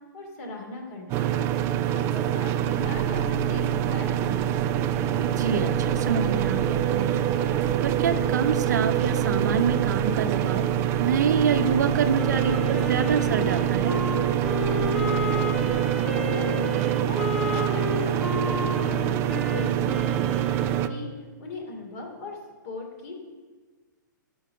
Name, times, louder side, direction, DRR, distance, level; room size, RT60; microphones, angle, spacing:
voice 1, 0.1-4.5 14.7-21.1 21.4-22.4 22.6-23.1, left 3 dB, 45° left, 2 dB, 2.6 m, -39 dB
sound 1, 1.1-20.9, right 11 dB, 25° right, 0.3 m, -25 dB
sound 2, 2.8-16.9, right 4 dB, 60° left, 3.5 m, -35 dB
voice 2, 5.2-7.3 7.8-10.7 11.0-14.0, right 6 dB, 60° right, 9 dB, 0.7 m, -26 dB
Wind instrument woodwind instrument, 12.2-21.0, left 1 dB, ahead, 0.7 m, -32 dB
13.0 x 4.7 x 6.6 m, 1.4 s
figure-of-eight pair, 115°, 11 cm